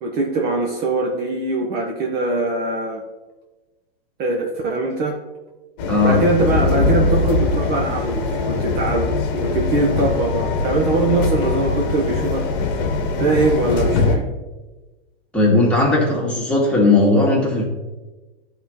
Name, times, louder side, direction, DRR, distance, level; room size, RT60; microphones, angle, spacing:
voice 1, 0.0-3.0 4.2-5.2 6.0-12.5 13.2-14.3, right 2 dB, 35° right, -1 dB, 0.9 m, -22 dB
sound 1, 5.8-14.2, left 3 dB, 50° left, 1.1 m, -21 dB
voice 2, 5.9-6.2 15.3-17.7, left 2 dB, 5° left, -5 dB, 2.0 m, -17 dB
11.0 x 3.8 x 2.9 m, 1.2 s
hypercardioid pair, 110°, 29 cm